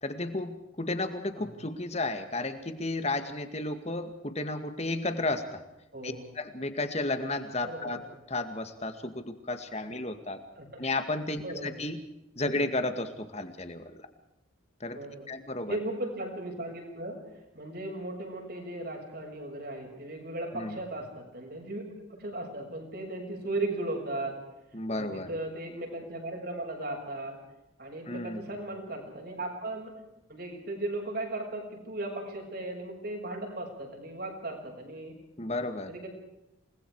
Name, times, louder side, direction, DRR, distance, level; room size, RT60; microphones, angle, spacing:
voice 1, 0.0-5.6 6.0-8.0 8.3-10.4 10.8-12.0 12.4-14.0 14.8-15.0 15.3-15.8 20.5-20.8 24.7-25.3 28.1-28.5 35.4-35.9, left 2 dB, 30° left, 9 dB, 2.1 m, -33 dB
voice 2, 5.9-6.3 7.6-8.1 10.6-10.9 11.4-11.8 12.5-12.6 14.9-15.3 15.7-17.2 17.5-21.8 22.2-24.4 24.9-27.4 27.8-29.9 30.3-35.1 35.9-36.1, right 2 dB, 50° right, 1 dB, 6.8 m, -37 dB
28.5 x 21.0 x 4.9 m, 0.91 s
head